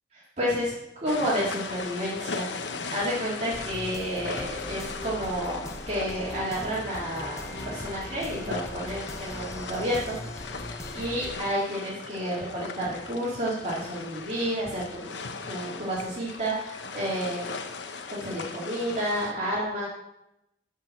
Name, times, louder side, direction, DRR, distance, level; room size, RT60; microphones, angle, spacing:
voice 1, 0.4-0.7 1.0-2.5 2.9-5.6 5.9-10.1 10.6-15.2 15.5-17.5 18.1-19.9, equal, 40° right, -8 dB, 2.4 m, -30 dB
sound 1, 1.1-19.3, left 4 dB, 80° left, 0.8 m, -38 dB
sound 2, 3.5-11.4, left 1 dB, 15° left, 0.8 m, -40 dB
13.5 x 4.7 x 5.8 m, 0.87 s
head